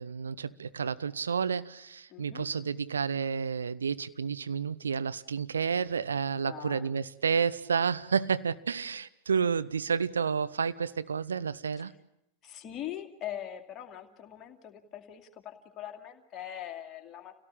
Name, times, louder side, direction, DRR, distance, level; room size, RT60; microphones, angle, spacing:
voice 1, 0.0-11.9, right 6 dB, 70° right, 13 dB, 0.9 m, -30 dB
voice 2, 2.1-2.5 6.4-6.9 12.4-17.3, left 11 dB, 30° left, 4 dB, 2.4 m, -42 dB
28.0 x 17.5 x 8.8 m, 0.82 s
figure-of-eight pair, 90°, 0 cm